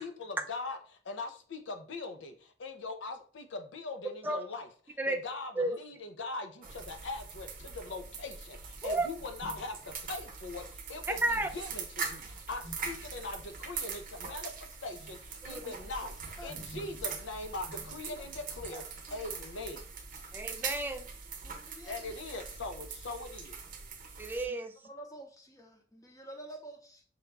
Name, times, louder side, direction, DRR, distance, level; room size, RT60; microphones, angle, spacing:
voice 1, 0.0-11.2 11.5-16.1 16.4-18.8 19.1-19.9 21.9-23.6, left 3 dB, 75° left, 7 dB, 0.6 m, -41 dB
sound 1, 6.6-24.4, right 5 dB, 50° right, 0.7 m, -42 dB
voice 2, 16.4-16.7 18.0-18.2 18.7-19.2 21.4-22.4 24.5-24.6 24.8-27.0, right 1 dB, 20° left, 3 dB, 0.7 m, -49 dB
voice 3, 20.3-21.1 24.2-24.7, right 2 dB, 10° right, 5 dB, 0.3 m, -32 dB
5.3 x 2.3 x 3.3 m, 0.42 s
head